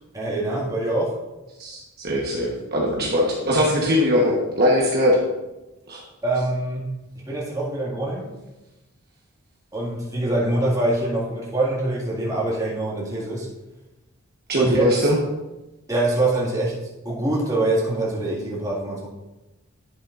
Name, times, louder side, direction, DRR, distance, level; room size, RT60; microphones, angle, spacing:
voice 1, 0.1-1.2 6.2-7.0 7.3-8.3 9.7-13.5 14.6-14.8 15.9-16.8 17.0-19.1, right 2 dB, 15° right, -5 dB, 1.9 m, -24 dB
voice 2, 1.6-5.2 5.9-6.0 14.5-15.2, equal, 45° right, -3 dB, 1.1 m, -21 dB
11.0 x 7.1 x 2.5 m, 1.0 s
head